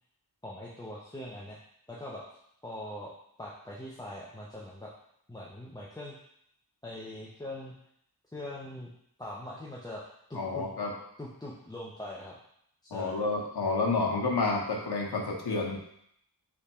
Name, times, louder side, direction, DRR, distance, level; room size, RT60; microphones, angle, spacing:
voice 1, 0.4-1.6 1.9-2.2 2.6-3.1 3.4-4.9 5.3-6.2 6.8-7.7 8.3-8.9 9.2-10.0 10.3-10.7 11.2-12.4 12.8-13.2, left 1 dB, 10° left, -5 dB, 0.6 m, -42 dB
voice 2, 10.3-10.9 12.9-15.8, left 3 dB, 90° left, 0 dB, 1.0 m, -29 dB
3.5 x 3.5 x 4.2 m, 0.71 s
wide cardioid pair, 110°, 38 cm